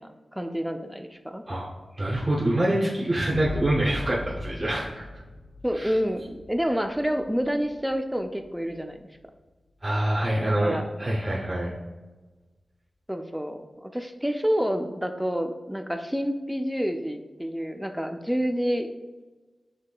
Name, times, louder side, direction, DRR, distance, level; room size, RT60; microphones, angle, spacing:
voice 1, 0.0-1.4 5.6-9.0 10.6-10.9 13.1-18.9, equal, 5° right, 6 dB, 0.4 m, -28 dB
voice 2, 1.9-5.0 5.7-6.0 9.8-11.7, right 1 dB, 25° right, -6 dB, 0.7 m, -25 dB
sound 1, 3.3-10.7, left 2 dB, 85° left, 0.4 m, -40 dB
6.4 x 3.1 x 2.2 m, 1.2 s
wide cardioid pair, 95°, 0 cm